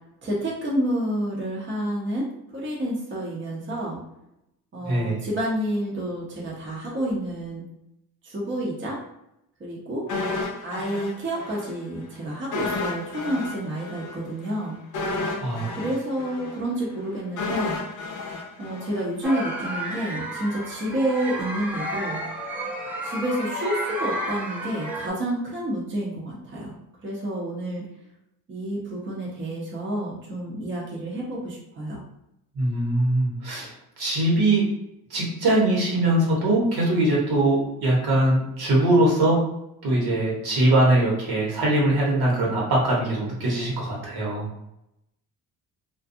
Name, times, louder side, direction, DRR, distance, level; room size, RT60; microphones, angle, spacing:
voice 1, 0.2-2.3 2.5-4.0 4.7-7.6 8.2-9.0 9.6-10.1 10.6-14.8 15.7-17.8 18.6-22.2 23.0-26.8 27.0-27.9 28.5-32.0, right 1 dB, 30° right, -4 dB, 0.7 m, -29 dB
voice 2, 4.8-5.2 15.4-15.8 32.5-33.7 34.0-34.6 35.1-39.4 39.8-44.5, right 1 dB, 75° right, -4 dB, 1.2 m, -22 dB
sound 1, 10.1-11.7 12.0-12.1 12.5-19.6 19.9-20.0, left 3 dB, 50° left, 0.6 m, -32 dB
sound 2, 19.2-25.1, right 1 dB, 5° right, 0.4 m, -32 dB
2.4 x 2.3 x 2.6 m, 0.83 s
cardioid pair, 125°, 38 cm